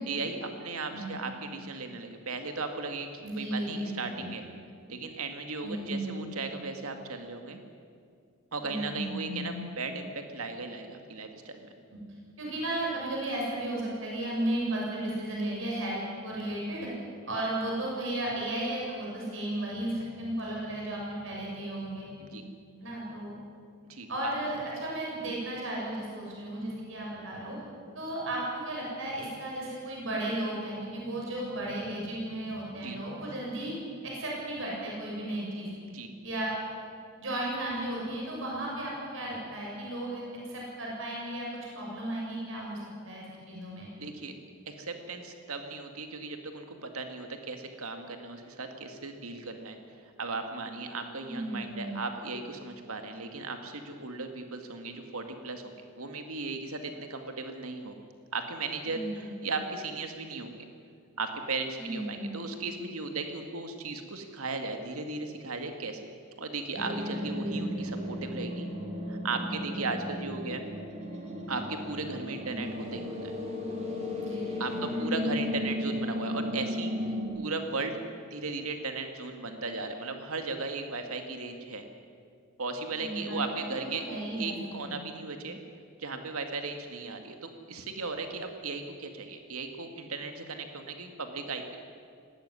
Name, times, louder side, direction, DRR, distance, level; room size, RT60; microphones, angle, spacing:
voice 1, 0.0-4.4 4.9-7.6 8.5-11.7 22.3-22.4 23.9-24.1 32.8-33.0 35.9-36.1 44.0-44.4 44.7-49.8 50.2-58.0 58.3-60.7 61.2-66.0 66.4-68.7 69.1-70.7 71.5-73.3 74.6-78.0 78.3-81.8 82.6-84.0 84.3-85.6 86.0-91.8, right 3 dB, 80° right, 6 dB, 2.1 m, -36 dB
voice 2, 0.9-1.2 3.2-4.3 5.6-6.3 8.6-9.6 11.9-12.0 12.4-16.9 17.3-22.1 22.8-23.3 24.1-27.6 27.9-33.7 34.0-35.7 36.2-36.5 37.2-41.5 41.7-42.8 43.0-43.9 51.3-52.0 58.9-59.6 61.8-62.4 74.2-74.9 82.9-84.6 84.8-85.0, right 1 dB, 60° right, -3 dB, 7.2 m, -34 dB
sound 1, 66.7-77.3, left 1 dB, 30° right, 3.4 m, -34 dB
19.0 x 17.5 x 9.9 m, 2.2 s
head